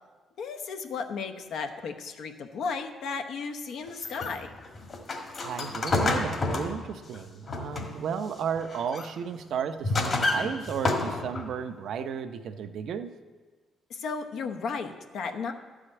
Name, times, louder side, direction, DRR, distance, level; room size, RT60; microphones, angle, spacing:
voice 1, 0.4-4.5 13.9-15.5, left 5 dB, 75° left, 6 dB, 0.9 m, -34 dB
sound 1, 3.9-8.1 8.6-9.1 9.6-11.6, left 2 dB, 45° left, 1.7 m, -30 dB
voice 2, 5.4-13.1, right 7 dB, 70° right, 9 dB, 0.6 m, -33 dB
12.0 x 5.0 x 8.7 m, 1.4 s
cardioid pair, 90°, 0 cm